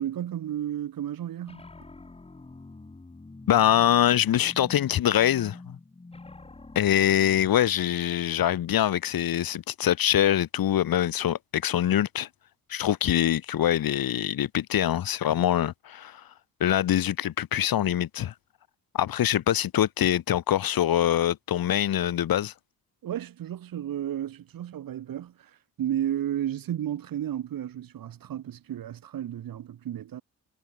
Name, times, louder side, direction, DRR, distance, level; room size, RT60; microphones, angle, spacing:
voice 1, 0.0-1.7 23.0-30.2, right 11 dB, 75° right, 3.6 m, -33 dB
sound 1, 1.4-7.5, left 3 dB, 15° left, 6.4 m, -46 dB
voice 2, 3.5-5.8 6.7-12.3 12.7-16.2 16.6-18.3 18.9-22.5, left 11 dB, 90° left, 4.3 m, -24 dB
wide cardioid pair, 165°, 34 cm